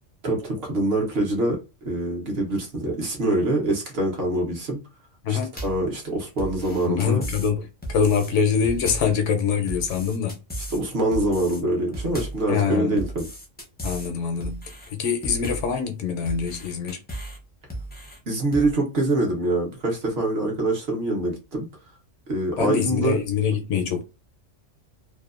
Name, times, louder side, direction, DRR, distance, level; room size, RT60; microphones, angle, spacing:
voice 1, 0.2-1.6 1.8-4.8 5.3-7.2 10.7-13.3 18.3-21.7 22.3-23.2, right 1 dB, 55° right, 1.0 m, -24 dB
sound 1, 5.6-5.9 6.4-7.5 7.8-8.3 8.6-9.2 9.7-10.8 11.1-11.6 11.9-12.5 13.0-14.1 14.4-14.9 15.2-15.7 16.3-17.4 17.7-18.2 18.5-18.7, right 1 dB, 10° left, 0.4 m, -35 dB
voice 2, 6.9-10.4 12.5-13.0 13.8-17.0 22.6-24.0, left 6 dB, 75° left, 0.9 m, -24 dB
2.7 x 2.2 x 2.3 m
omnidirectional pair, 1.3 m